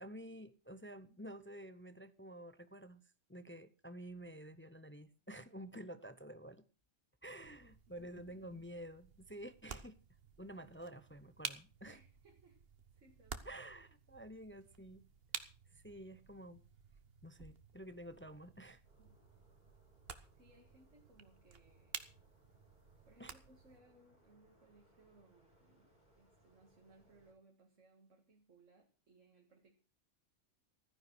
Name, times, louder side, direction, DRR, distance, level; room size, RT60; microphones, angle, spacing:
voice 1, 0.0-3.0 3.3-6.6 7.2-10.0 10.4-12.0 13.5-15.0 15.7-16.6 17.2-18.8 23.2-23.3, right 1 dB, 15° left, 0.5 m, -50 dB
sound 1, 7.4-23.8, right 6 dB, 50° right, 1.3 m, -52 dB
voice 2, 7.9-8.6 10.5-10.9 11.9-12.6 12.9-13.6 19.0-19.1 20.3-22.0 23.0-29.7, right 2 dB, 75° right, 2.2 m, -66 dB
sound 2, 18.8-27.3, right 1 dB, 35° left, 3.9 m, -70 dB
14.0 x 10.0 x 6.2 m
omnidirectional pair, 1.3 m